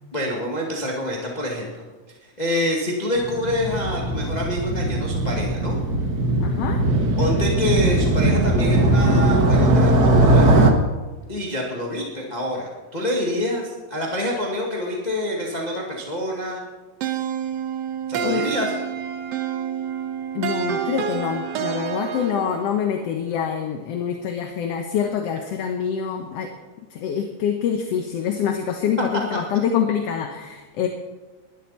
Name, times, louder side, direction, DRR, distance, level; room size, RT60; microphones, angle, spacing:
voice 1, 0.1-1.8 2.2-5.8 7.2-10.5 11.3-16.6 18.1-18.7, left 1 dB, 15° left, -2 dB, 1.7 m, -26 dB
Motorcycle, 3.2-10.7, right 1 dB, 45° right, 1.3 m, -19 dB
voice 2, 6.4-6.8 18.2-18.5 20.3-26.5 26.9-30.9, left 8 dB, 65° left, 4 dB, 1.9 m, -25 dB
sound 1, 17.0-22.8, right 9 dB, 65° right, 1.9 m, -28 dB
20.0 x 12.5 x 4.3 m, 1.2 s
omnidirectional pair, 3.3 m